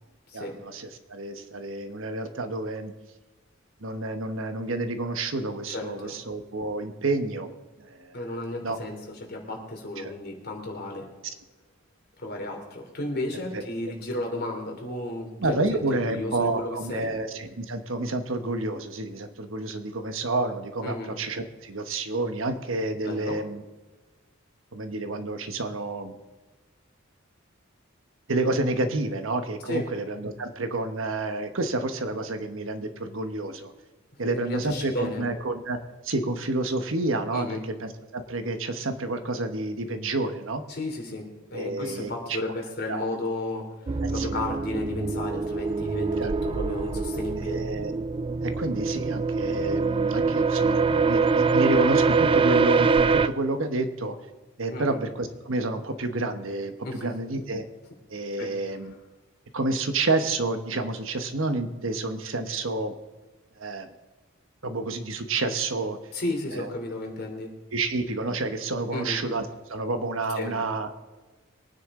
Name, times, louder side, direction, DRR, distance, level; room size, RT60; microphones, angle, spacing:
voice 1, 0.3-2.9 3.8-7.5 7.8-8.2 8.6-8.8 10.0-10.1 13.5-13.6 15.4-23.6 24.7-26.2 28.3-33.7 34.2-35.8 36.0-40.6 41.5-42.5 42.9-43.1 44.0-44.3 46.2-46.3 47.4-47.9 48.4-54.2 54.6-57.6 58.1-58.9 59.5-62.9 63.6-63.9 64.6-66.0 66.5-66.7 67.7-70.9, right 2 dB, 70° right, 8 dB, 1.2 m, -29 dB
voice 2, 5.7-6.1 8.1-11.0 12.2-15.3 15.7-17.1 20.8-21.1 23.0-23.4 29.7-29.9 34.2-35.2 37.3-37.6 40.7-47.6 54.7-55.0 56.8-57.1 58.4-58.8 66.1-67.5 68.9-69.2 70.4-70.5, left 2 dB, 50° left, 1 dB, 3.1 m, -33 dB
sound 1, 43.9-53.3, right 4 dB, 25° right, 0.3 m, -24 dB
23.0 x 9.6 x 3.8 m, 1.2 s
head